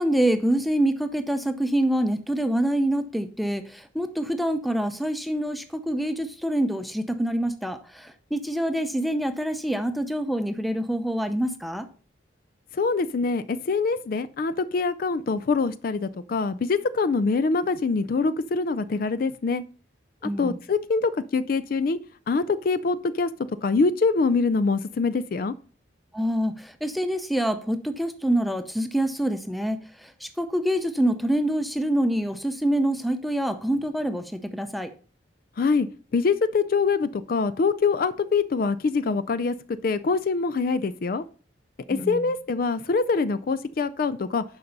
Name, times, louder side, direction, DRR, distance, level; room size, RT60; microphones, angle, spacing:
voice 1, 0.0-11.9 20.2-20.6 26.1-29.8 30.2-34.9 41.9-42.3, right 1 dB, ahead, 9 dB, 0.6 m, -26 dB
voice 2, 12.8-19.6 20.2-22.0 22.3-23.3 23.6-25.5 35.6-35.9 36.1-41.2 41.9-44.4, left 4 dB, 50° left, 15 dB, 0.3 m, -24 dB
11.0 x 5.3 x 3.9 m, 0.41 s
head